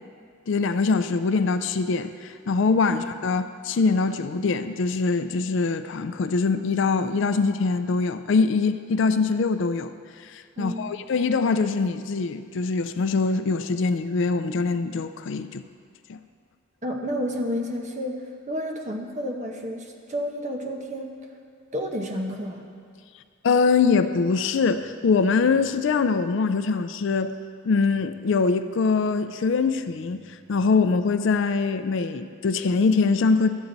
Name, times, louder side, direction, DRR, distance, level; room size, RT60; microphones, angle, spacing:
voice 1, 0.5-9.9 10.2-15.6 16.1-16.2 23.4-27.3 27.6-30.2 30.5-33.5, left 4 dB, 60° left, 10 dB, 0.4 m, -23 dB
voice 2, 10.6-10.9 16.8-21.1 21.7-22.7, equal, 35° right, 2 dB, 0.9 m, -30 dB
13.0 x 8.2 x 4.0 m, 2.2 s
head